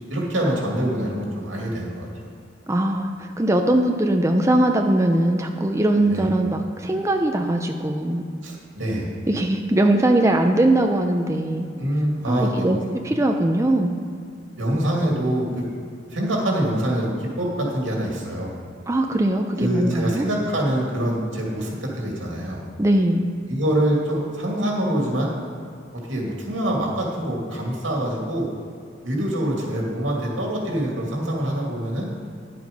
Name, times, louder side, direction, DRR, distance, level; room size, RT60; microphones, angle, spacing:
voice 1, 0.1-2.3 6.0-6.3 8.4-9.1 11.8-12.7 14.6-15.7 16.1-18.5 19.6-22.6 23.5-25.3 25.9-28.5 29.0-32.1, right 1 dB, 85° right, -1 dB, 2.5 m, -25 dB
voice 2, 2.7-8.2 9.3-11.7 12.2-12.8 13.0-14.0 18.9-20.3 22.8-23.3, right 1 dB, 15° right, 3 dB, 0.5 m, -20 dB
10.5 x 7.7 x 5.3 m, 2.4 s
head